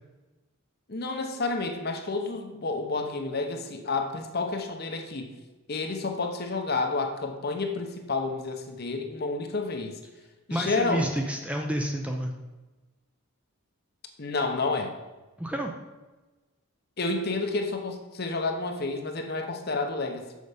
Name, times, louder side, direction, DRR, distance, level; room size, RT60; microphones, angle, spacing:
voice 1, 0.9-5.3 5.7-9.9 10.5-11.2 14.2-14.9 17.0-20.4, left 3 dB, 45° left, 4 dB, 0.9 m, -30 dB
voice 2, 10.5-12.3 15.4-15.7, right 1 dB, 5° right, 2 dB, 0.6 m, -29 dB
6.8 x 6.5 x 5.1 m, 1.2 s
head